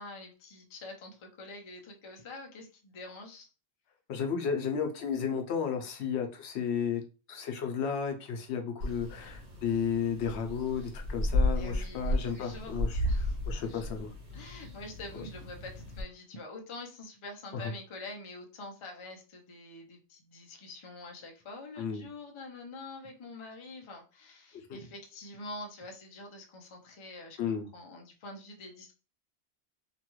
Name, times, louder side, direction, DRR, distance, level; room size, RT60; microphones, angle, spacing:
voice 1, 0.0-3.5 11.6-12.8 13.0-13.9 14.3-27.4 27.7-28.9, left 2 dB, 35° left, 2 dB, 0.5 m, -46 dB
voice 2, 4.1-7.0 7.3-13.1 13.5-14.1 15.1-15.2 17.5-17.7 21.8-22.0 24.7-24.8 27.4-27.6, left 7 dB, 75° left, 5 dB, 0.9 m, -33 dB
sound 1, 8.8-16.0, left 1 dB, 90° right, 1.3 m, -33 dB
2.9 x 2.3 x 3.0 m, 0.34 s
omnidirectional pair, 1.1 m